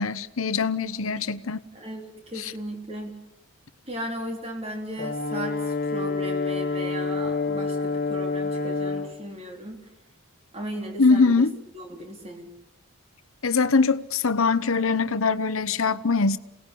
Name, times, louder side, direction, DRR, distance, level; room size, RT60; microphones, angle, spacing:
voice 1, 0.0-1.6 2.4-2.5 11.0-11.5 13.4-16.4, left 4 dB, 75° left, 1.0 m, -22 dB
voice 2, 1.7-3.2 3.9-9.8 10.5-11.4 11.7-12.5, equal, 30° right, 4.1 m, -36 dB
Brass instrument, 5.0-9.1, left 4 dB, 45° left, 2.0 m, -28 dB
28.0 x 19.0 x 8.6 m
head